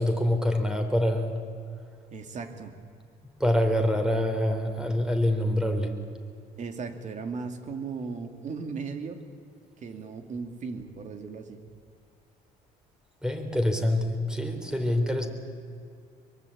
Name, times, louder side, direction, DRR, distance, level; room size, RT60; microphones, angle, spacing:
voice 1, 0.0-1.4 3.4-6.0 13.2-15.3, left 1 dB, 5° right, 6 dB, 3.7 m, -25 dB
voice 2, 2.1-2.7 6.6-9.2 9.8-11.6, right 5 dB, 45° right, 6 dB, 2.8 m, -36 dB
23.5 x 23.5 x 8.7 m, 2.3 s
cardioid pair, 110°, 17 cm